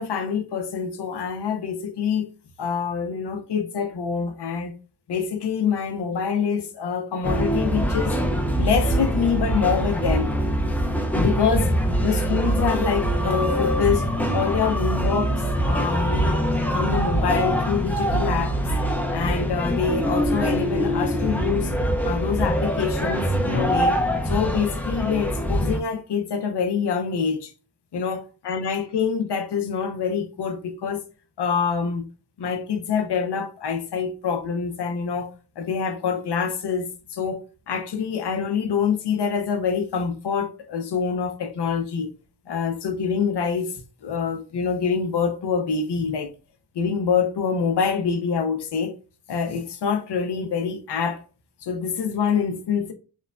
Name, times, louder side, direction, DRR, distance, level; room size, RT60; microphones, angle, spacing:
voice 1, 0.0-2.3 2.6-4.7 5.1-8.2 8.6-10.4 11.1-11.7 12.0-14.0 14.3-15.3 15.6-18.5 19.1-21.7 22.0-24.0 24.2-27.5 27.9-31.0 31.4-32.1 32.4-42.1 42.5-43.7 44.0-46.3 46.8-49.0 49.3-51.2 51.6-52.9, left 6 dB, 85° left, 0.5 m, -25 dB
sound 1, 7.2-25.8, equal, 5° left, 0.4 m, -24 dB
3.0 x 2.1 x 2.3 m
wide cardioid pair, 95°, 40 cm